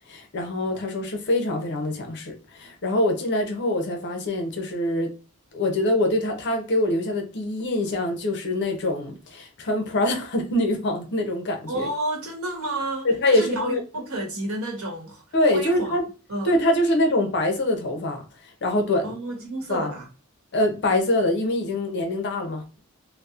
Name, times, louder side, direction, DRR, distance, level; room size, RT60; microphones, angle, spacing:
voice 1, 0.1-5.1 5.5-11.9 13.0-13.8 15.3-16.0 16.4-19.1 19.7-19.9 20.5-22.8, left 1 dB, 50° left, 0.6 m, -24 dB
voice 2, 11.7-15.2 15.5-16.0 16.3-16.6 19.0-20.1, right 1 dB, 70° right, 0.9 m, -30 dB
2.8 x 2.0 x 2.3 m
head